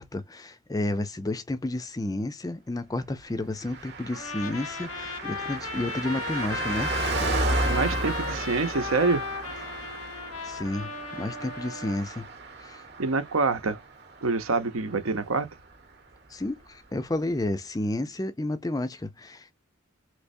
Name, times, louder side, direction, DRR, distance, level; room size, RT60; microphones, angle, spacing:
voice 1, 0.0-6.9 10.4-12.3 12.6-12.8 16.3-19.5, left 1 dB, 15° left, 0.4 m, -31 dB
Car passing by, 3.6-15.5 15.7-15.8, right 2 dB, 50° right, 0.9 m, -33 dB
Trumpet, 4.1-12.0, left 4 dB, 90° left, 0.9 m, -36 dB
voice 2, 7.4-9.2 13.0-13.8 14.2-15.5, right 4 dB, 85° right, 0.8 m, -26 dB
3.4 x 3.2 x 2.6 m
head